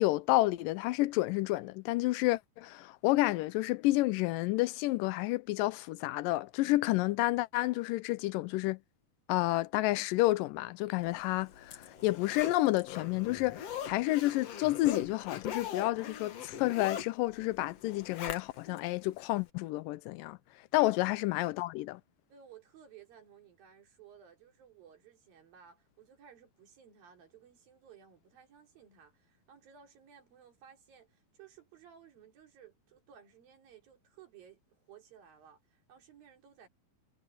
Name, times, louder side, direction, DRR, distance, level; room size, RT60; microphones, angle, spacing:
voice 1, 0.0-8.8 9.3-20.4 20.7-22.0, left 18 dB, 80° left, 2.1 m, -30 dB
Zipper (clothing), 11.2-18.8 19.2-19.3, left 9 dB, 55° left, 2.1 m, -41 dB
voice 2, 22.3-36.7, right 8 dB, 70° right, 5.2 m, -57 dB
omnidirectional pair, 4.2 m